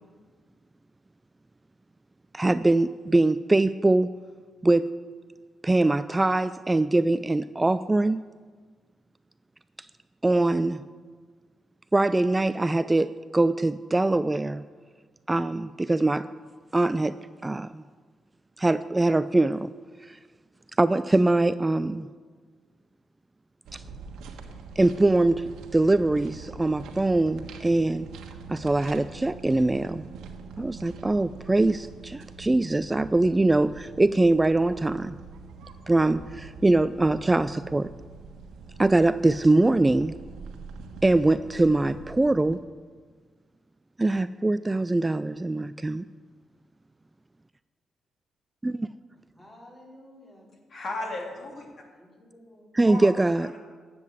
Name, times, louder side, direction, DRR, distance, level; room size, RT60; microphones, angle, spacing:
voice 1, 2.3-4.1 4.6-4.9 5.6-8.2 10.2-10.8 11.9-13.1 13.3-14.6 15.3-16.3 16.7-17.2 17.4-17.8 18.6-19.7 20.0-20.2 20.8-22.1 23.7-23.8 24.8-25.5 25.7-28.1 28.5-30.0 30.6-35.2 35.9-37.9 38.8-40.1 41.0-42.6 44.0-46.0 48.6-48.9 52.8-53.5, right 2 dB, 20° right, 14 dB, 0.3 m, -23 dB
sound 1, 23.7-42.6, right 4 dB, 85° right, 1.3 m, -44 dB
voice 2, 49.3-50.5 51.9-52.7, left 1 dB, 20° left, -2 dB, 4.0 m, -52 dB
voice 3, 50.7-51.6 52.8-53.6, left 2 dB, 50° left, 0 dB, 3.0 m, -35 dB
10.5 x 7.7 x 7.9 m, 1.5 s
cardioid pair, 80°, 0 cm